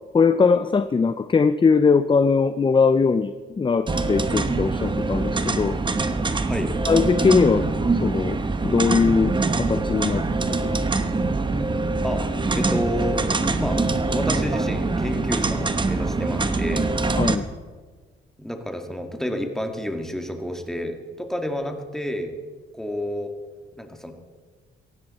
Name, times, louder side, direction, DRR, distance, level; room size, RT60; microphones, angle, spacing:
voice 1, 0.1-5.8 6.9-7.7 8.0-8.4 8.6-9.3 9.6-10.9 17.2-17.4, left 5 dB, 25° left, 11 dB, 0.6 m, -20 dB
sound 1, 3.9-17.4, right 3 dB, 25° right, 1.2 m, -24 dB
voice 2, 12.0-13.3 13.6-13.8 14.1-16.9 18.4-22.3 22.7-23.3 23.8-24.1, equal, ahead, 4 dB, 2.2 m, -29 dB
18.0 x 15.0 x 4.3 m, 1.4 s
cardioid pair, 90°, 20 cm